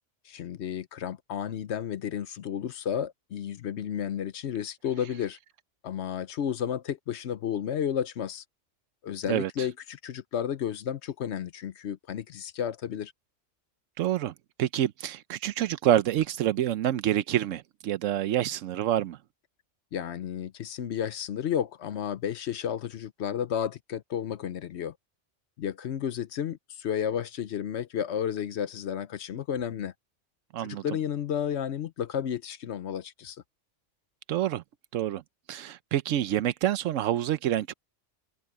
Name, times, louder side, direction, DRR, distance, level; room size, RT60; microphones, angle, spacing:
voice 1, 0.3-5.4 5.8-8.4 9.0-13.1 19.9-24.9 25.6-29.9 30.6-33.4, left 9 dB, 65° left, 0.9 m, -32 dB
voice 2, 9.3-9.7 14.0-14.3 14.6-19.2 30.5-30.8 34.3-34.6 34.9-35.2 35.5-37.7, right 12 dB, 90° right, 1.0 m, -27 dB
omnidirectional pair, 1.3 m